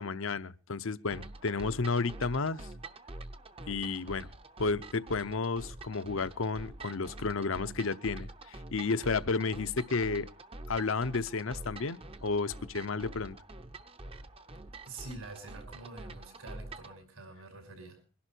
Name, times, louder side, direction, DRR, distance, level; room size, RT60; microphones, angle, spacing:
voice 1, 0.0-2.7 3.7-4.3 4.6-10.3 10.7-13.4, left 4 dB, 65° left, 14 dB, 0.7 m, -32 dB
sound 1, 1.1-17.0, right 2 dB, 25° right, 0.7 m, -46 dB
voice 2, 14.9-18.0, right 3 dB, 80° right, 6 dB, 5.9 m, -46 dB
23.0 x 11.5 x 4.5 m, 0.36 s
head